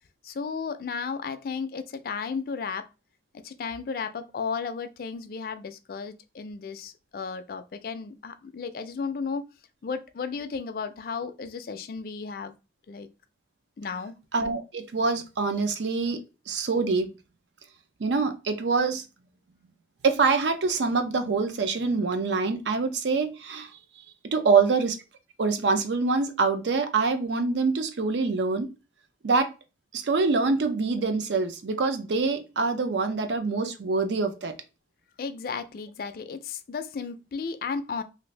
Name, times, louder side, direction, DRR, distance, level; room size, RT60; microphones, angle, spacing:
voice 1, 0.2-2.9 3.3-9.5 9.8-12.5 12.9-13.1 13.8-14.1 35.2-38.0, left 5 dB, 55° left, 0.3 m, -34 dB
voice 2, 14.3-16.2 16.5-17.1 18.0-19.0 20.0-23.7 24.2-25.0 25.4-28.7 29.2-29.5 29.9-34.5, right 4 dB, 85° right, 0.5 m, -25 dB
2.6 x 2.5 x 3.2 m
head